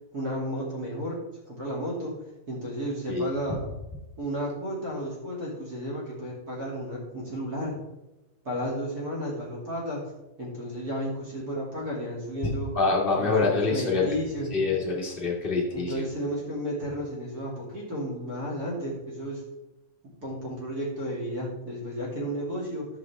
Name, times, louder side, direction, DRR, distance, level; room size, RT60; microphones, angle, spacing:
voice 1, 0.1-1.2 1.5-2.1 2.5-3.6 4.2-7.7 8.4-10.0 10.4-12.7 13.2-14.5 15.7-19.4 20.2-22.9, equal, 30° right, -3 dB, 2.8 m, -33 dB
voice 2, 12.4-14.1 14.5-16.0, left 3 dB, 20° left, -3 dB, 1.4 m, -26 dB
11.0 x 7.4 x 3.6 m, 0.97 s
omnidirectional pair, 4.1 m